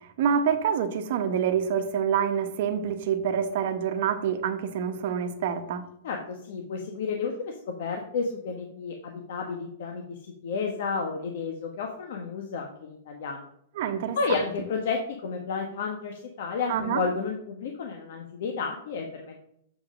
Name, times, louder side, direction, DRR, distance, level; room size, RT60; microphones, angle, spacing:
voice 1, 0.0-5.8 13.8-14.2 16.7-17.0, right 8 dB, 50° right, 8 dB, 1.0 m, -27 dB
voice 2, 6.0-13.5 14.1-19.3, left 5 dB, 60° left, 2 dB, 1.3 m, -32 dB
7.2 x 4.9 x 6.3 m, 0.71 s
supercardioid pair, 160°, 0 cm